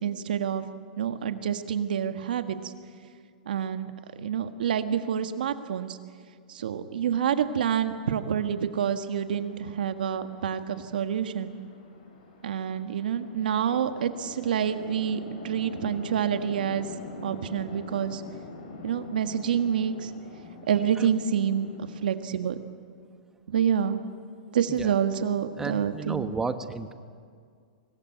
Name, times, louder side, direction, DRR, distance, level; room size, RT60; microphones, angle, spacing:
voice 1, 0.0-0.6 1.0-2.7 3.4-3.9 4.2-6.0 6.5-11.6 12.4-16.9 17.2-18.2 18.8-20.1 20.7-22.6 23.5-24.0 24.5-26.3, right 8 dB, 80° right, 8 dB, 1.5 m, -27 dB
Chatter / Traffic noise roadway noise / Train, 8.6-22.1, left 2 dB, 70° left, 6.9 m, -45 dB
voice 2, 25.6-26.9, right 4 dB, 10° right, 9 dB, 1.1 m, -32 dB
24.5 x 19.0 x 9.2 m, 2.1 s
hypercardioid pair, 145°, 5 cm